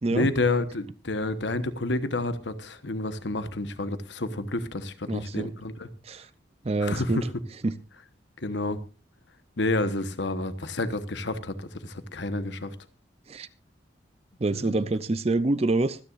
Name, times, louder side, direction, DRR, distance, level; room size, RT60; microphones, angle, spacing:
voice 1, 0.1-5.9 6.8-7.2 8.4-8.8 9.6-12.7 14.5-14.8, left 2 dB, 75° left, 1.2 m, -29 dB
voice 2, 5.1-5.5 6.0-6.3 6.6-7.3 7.6-7.8 13.3-13.5 14.4-16.0, right 2 dB, 35° right, 0.5 m, -26 dB
24.5 x 9.9 x 2.5 m
head